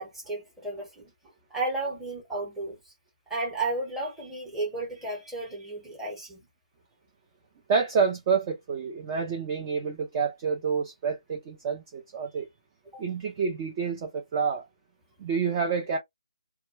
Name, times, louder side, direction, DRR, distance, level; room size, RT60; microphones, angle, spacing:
voice 1, 0.0-2.9 3.3-6.5 12.9-13.0, right 2 dB, 5° right, 1.0 m, -33 dB
voice 2, 7.7-12.5 13.0-14.6 15.2-16.0, right 5 dB, 25° right, 0.5 m, -28 dB
2.3 x 2.1 x 3.2 m
figure-of-eight pair, 155°, 4 cm